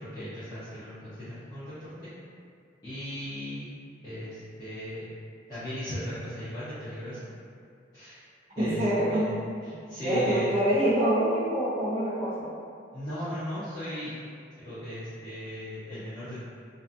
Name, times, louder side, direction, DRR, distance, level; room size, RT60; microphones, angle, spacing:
voice 1, 0.1-2.1 2.8-3.7 4.0-5.1 5.5-7.2 7.9-8.2 8.6-8.8 9.1-9.3 9.6-10.5 12.9-14.1 14.6-16.4, left 1 dB, 20° left, -16 dB, 0.6 m, -37 dB
voice 2, 8.6-9.4 10.0-12.5, right 1 dB, 30° right, -7 dB, 0.5 m, -25 dB
2.6 x 2.3 x 2.4 m, 2.3 s
head